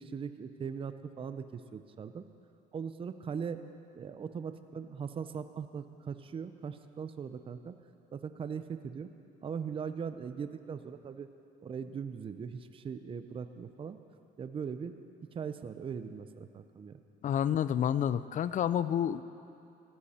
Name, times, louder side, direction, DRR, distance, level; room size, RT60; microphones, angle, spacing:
voice 1, 0.0-2.2 2.7-3.6 3.9-7.7 8.1-9.1 9.4-11.3 11.6-14.0 14.4-14.9 15.3-17.0, right 6 dB, 30° right, 10 dB, 0.6 m, -40 dB
voice 2, 17.2-19.2, left 9 dB, 50° left, 15 dB, 0.5 m, -29 dB
16.0 x 13.5 x 4.3 m, 2.6 s
cardioid pair, 110°, 17 cm